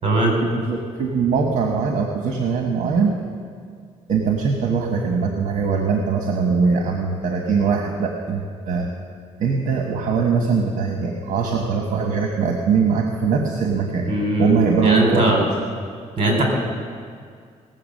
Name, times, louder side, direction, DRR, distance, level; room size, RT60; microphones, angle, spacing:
voice 1, 0.4-3.1 4.1-8.9 9.4-14.1 14.4-15.5, right 5 dB, 65° right, 2 dB, 1.4 m, -21 dB
voice 2, 14.0-15.4 16.2-16.4, right 1 dB, 45° right, 0 dB, 4.5 m, -20 dB
19.0 x 7.9 x 6.6 m, 2.1 s
cardioid pair, 115°, 13 cm